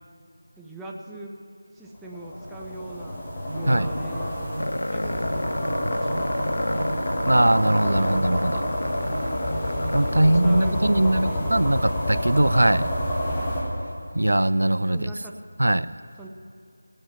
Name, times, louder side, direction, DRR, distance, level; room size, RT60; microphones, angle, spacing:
voice 1, 0.6-1.3 1.7-3.2 3.5-4.3 4.9-6.4 6.7-6.9 7.8-8.6 9.6-11.9 14.9-15.3 16.2-16.3, right 1 dB, 5° right, 0.6 m, -40 dB
sound 1, 2.0-13.6, left 1 dB, 20° left, 1.8 m, -29 dB
Musical instrument, 3.5-11.9, right 1 dB, 40° right, 1.3 m, -35 dB
sound 2, 4.6-11.0, left 1 dB, 85° left, 0.4 m, -31 dB
voice 2, 7.3-8.6 9.9-12.9 14.1-15.1 15.6-15.9, right 1 dB, 85° right, 0.4 m, -21 dB
17.0 x 8.9 x 5.7 m
figure-of-eight pair, 170°, 0 cm